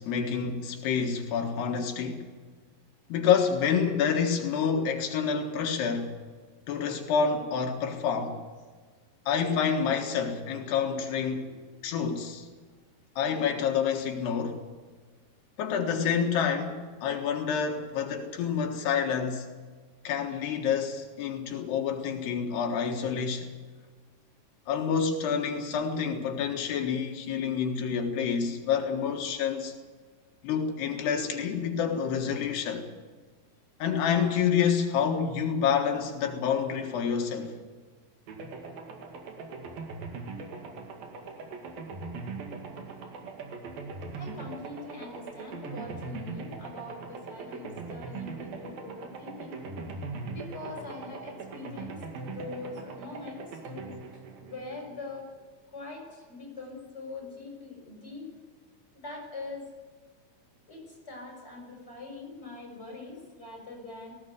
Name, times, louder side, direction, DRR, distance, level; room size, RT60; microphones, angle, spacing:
voice 1, 0.0-2.3 3.1-6.2 6.7-8.4 9.3-11.5 11.8-12.5 13.2-14.6 15.6-19.5 20.1-23.5 24.7-29.7 30.4-32.9 33.8-37.5, left 7 dB, 85° left, 3.7 m, -28 dB
voice 2, 11.0-12.0 44.1-49.6 50.3-53.9 54.4-55.3 55.7-58.3 58.9-59.7 60.7-64.1, left 3 dB, 15° left, 6.4 m, -43 dB
sound 1, 38.3-55.2, right 4 dB, 65° right, 3.7 m, -40 dB
19.0 x 16.5 x 8.2 m
omnidirectional pair, 4.6 m